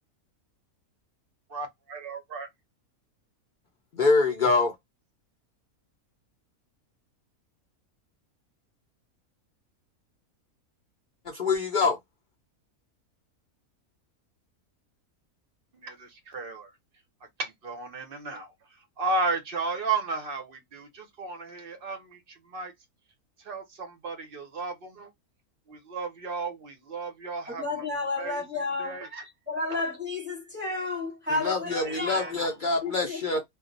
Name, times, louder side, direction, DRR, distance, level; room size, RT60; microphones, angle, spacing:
voice 1, 1.5-2.5 15.7-16.8 17.4-22.7 23.4-25.1 25.7-29.3 29.7-29.8 31.8-32.6, right 3 dB, 55° right, 0.7 m, -34 dB
voice 2, 3.9-4.8 11.3-12.0 31.3-33.4, left 3 dB, 65° left, 0.4 m, -25 dB
voice 3, 27.6-29.0 29.5-32.3 32.8-33.4, left 3 dB, 10° right, 0.9 m, -31 dB
2.3 x 2.1 x 3.7 m
omnidirectional pair, 1.5 m